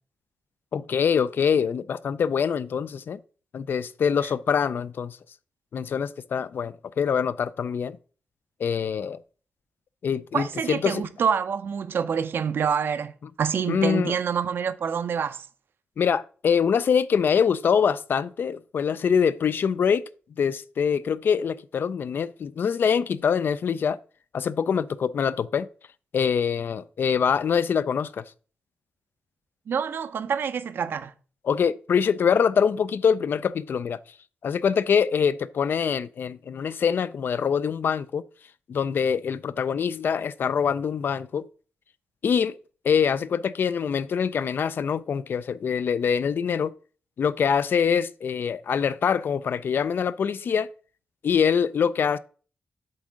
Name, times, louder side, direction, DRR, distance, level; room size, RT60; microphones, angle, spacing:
voice 1, 0.7-3.2 3.5-5.2 5.7-8.0 8.6-9.2 10.0-11.0 13.7-14.1 16.0-20.1 20.4-24.0 24.3-25.7 26.1-28.2 31.4-34.0 34.4-38.2 38.7-41.4 42.2-42.6 42.8-46.7 47.2-50.7 51.2-52.2, left 7 dB, 60° left, 0.4 m, -24 dB
voice 2, 10.3-15.5 29.7-31.1, right 7 dB, 65° right, 0.6 m, -27 dB
7.7 x 3.6 x 6.2 m
wide cardioid pair, 130°, 4 cm